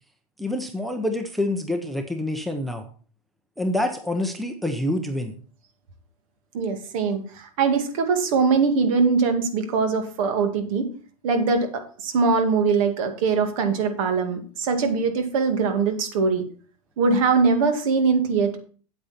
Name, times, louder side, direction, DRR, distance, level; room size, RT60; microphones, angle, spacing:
voice 1, 0.4-2.8 3.6-5.3, left 1 dB, ahead, 6 dB, 0.7 m, -27 dB
voice 2, 6.5-10.9 11.2-16.4 17.0-18.6, right 5 dB, 60° right, 7 dB, 2.1 m, -22 dB
8.4 x 8.4 x 4.3 m, 0.42 s
supercardioid pair, 145°, 19 cm